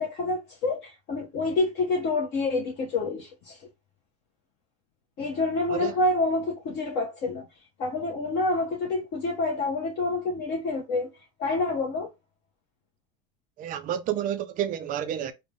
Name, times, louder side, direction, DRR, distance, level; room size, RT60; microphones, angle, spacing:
voice 1, 0.0-3.6 5.2-7.5 7.8-11.1 11.4-12.1, left 2 dB, 35° left, 0.8 m, -27 dB
voice 2, 13.6-15.3, right 10 dB, 30° right, 0.4 m, -30 dB
3.7 x 2.1 x 3.3 m
supercardioid pair, 125°, 30 cm